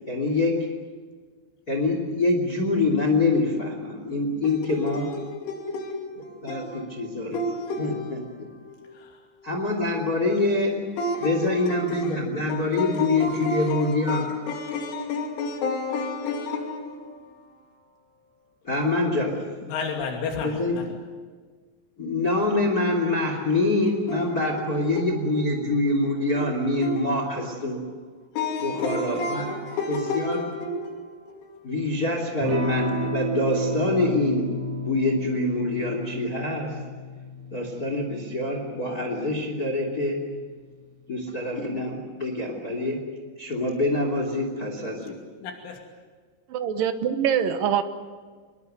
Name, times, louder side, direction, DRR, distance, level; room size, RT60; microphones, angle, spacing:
voice 1, 0.1-0.6 1.7-5.1 6.4-7.4 7.8-8.2 9.4-10.8 11.2-14.2 18.6-19.4 20.4-20.8 22.0-27.8 28.6-29.5 29.9-30.4 31.6-34.5 34.8-36.8 37.5-40.2 41.1-43.0 43.4-45.2, left 2 dB, 25° left, 3 dB, 2.8 m, -25 dB
voice 2, 4.4-9.5 10.7-17.8 19.6-20.9 24.1-27.2 28.3-31.9 45.4-45.8, left 2 dB, 90° left, 2 dB, 5.1 m, -32 dB
Electric guitar / Strum, 32.4-40.7, equal, 40° right, 2.1 m, -32 dB
voice 3, 46.5-47.8, right 8 dB, 65° right, 9 dB, 2.3 m, -24 dB
26.0 x 22.0 x 7.9 m, 1.5 s
omnidirectional pair, 5.4 m